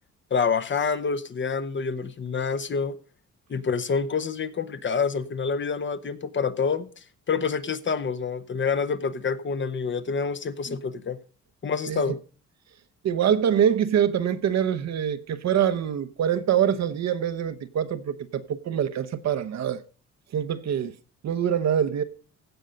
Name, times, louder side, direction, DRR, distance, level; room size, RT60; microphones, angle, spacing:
voice 1, 0.3-2.9 3.5-6.9 7.3-11.2 11.6-12.1, left 5 dB, 40° left, 0.9 m, -27 dB
voice 2, 13.0-19.8 20.3-21.0 21.2-22.0, right 9 dB, 60° right, 1.0 m, -24 dB
16.0 x 5.5 x 5.2 m
cardioid pair, 90°, 30 cm